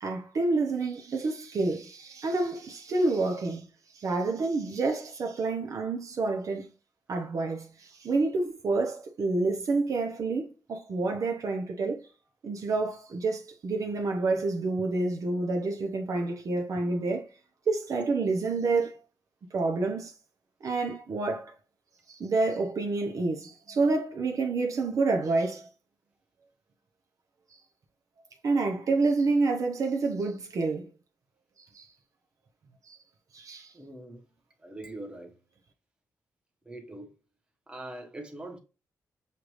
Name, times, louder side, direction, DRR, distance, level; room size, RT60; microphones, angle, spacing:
voice 1, 0.0-3.6 3.9-6.7 7.1-12.0 12.4-17.3 17.7-19.0 19.5-20.1 20.6-21.5 22.1-25.7 28.4-30.9 31.7-31.9 32.9-33.0 33.3-33.7, right 3 dB, 60° right, 0.8 m, -28 dB
voice 2, 33.7-34.2 34.6-35.4 36.6-37.1 37.7-38.6, right 1 dB, 15° right, 1.2 m, -42 dB
6.7 x 2.5 x 3.1 m
cardioid pair, 90°, 7 cm